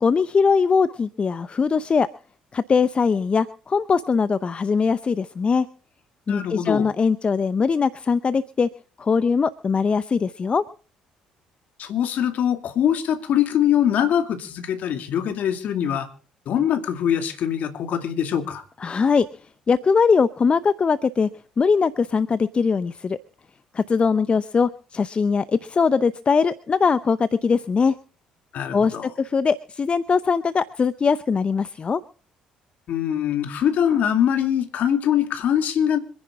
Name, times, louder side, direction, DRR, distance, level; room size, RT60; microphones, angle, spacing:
voice 1, 0.0-2.1 2.5-5.7 6.3-8.7 9.0-10.6 18.8-19.3 19.7-21.3 21.6-23.2 23.7-28.0 28.7-32.0, left 5 dB, 40° left, 15 dB, 0.7 m, -21 dB
voice 2, 6.3-6.9 11.8-16.1 16.5-18.6 28.5-29.1 32.9-36.0, left 9 dB, 60° left, 7 dB, 2.3 m, -23 dB
26.0 x 10.5 x 3.6 m, 0.38 s
hypercardioid pair, 55°, 3 cm